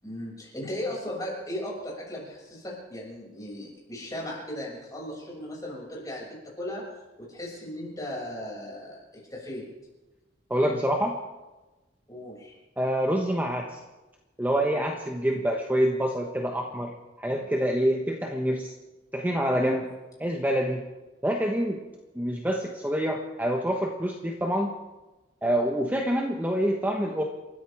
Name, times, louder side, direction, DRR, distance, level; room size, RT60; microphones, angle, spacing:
voice 1, 0.0-6.8 7.2-9.0 9.3-9.7 12.1-12.6 19.5-19.8, left 1 dB, 20° left, -4 dB, 6.2 m, -36 dB
voice 2, 10.5-11.2 12.8-13.8 14.4-18.7 19.1-19.8 20.2-20.8 21.2-21.8 22.1-24.7 25.4-27.2, equal, 10° right, 1 dB, 1.2 m, -26 dB
28.5 x 14.0 x 3.5 m, 1.1 s
head